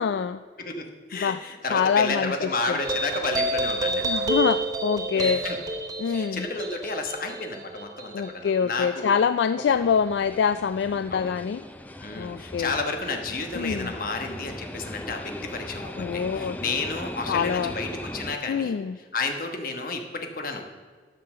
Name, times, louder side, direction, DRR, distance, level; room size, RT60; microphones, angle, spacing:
voice 1, 0.0-0.4 1.2-1.4 1.7-2.3 2.7-2.8 4.0-5.4 6.0-6.5 8.1-11.6 12.2-12.7 13.5-13.9 16.0-16.6 17.3-17.7 18.5-18.9, left 6 dB, 75° left, 12 dB, 0.3 m, -25 dB
voice 2, 0.6-4.1 5.1-5.6 6.0-9.2 11.1-11.3 12.0-20.6, left 3 dB, 50° left, 4 dB, 1.3 m, -31 dB
sound 1, 2.8-9.6, right 2 dB, 20° right, 0.9 m, -29 dB
sound 2, 9.7-18.4, left 1 dB, 10° left, 0.4 m, -39 dB
12.0 x 5.7 x 6.6 m, 1.5 s
head